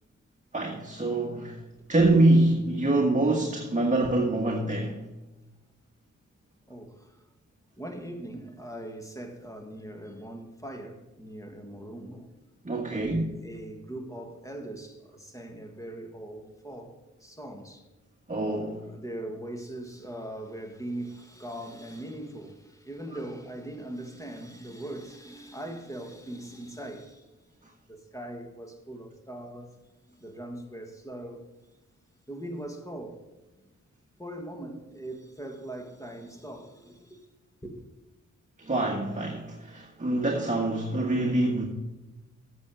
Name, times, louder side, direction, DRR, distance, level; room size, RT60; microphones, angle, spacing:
voice 1, 0.5-1.6 1.9-5.0 12.6-13.2 18.3-18.8 38.6-41.6, right 2 dB, 25° right, 1.4 m, -25 dB
voice 2, 6.7-7.2 7.8-12.3 12.9-17.9 18.9-27.3 27.9-29.7 30.1-31.4 32.3-33.2 33.5-33.6 34.2-37.3 37.6-37.8, right 1 dB, 10° left, 1.8 m, -40 dB
8.5 x 6.8 x 6.4 m
cardioid pair, 65°, 31 cm